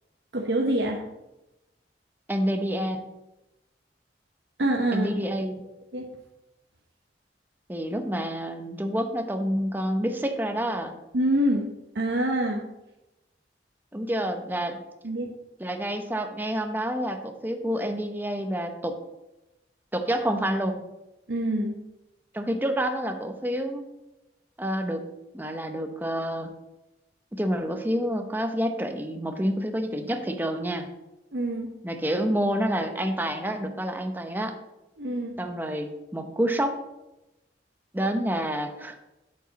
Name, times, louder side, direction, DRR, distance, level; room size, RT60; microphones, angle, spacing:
voice 1, 0.3-1.0 4.6-5.1 5.9-6.1 11.1-11.6 11.9-12.6 15.0-15.3 21.3-21.8 31.3-31.7 35.0-35.4, right 1 dB, 75° right, 1 dB, 1.0 m, -25 dB
voice 2, 2.3-3.0 4.9-5.6 7.7-10.9 13.9-14.8 15.6-19.0 19.9-20.9 22.3-23.9 24.6-25.0 25.3-26.5 27.3-30.9 31.8-34.6 35.4-36.8 37.9-39.0, equal, 10° right, 5 dB, 0.8 m, -28 dB
8.7 x 7.7 x 4.1 m, 0.95 s
head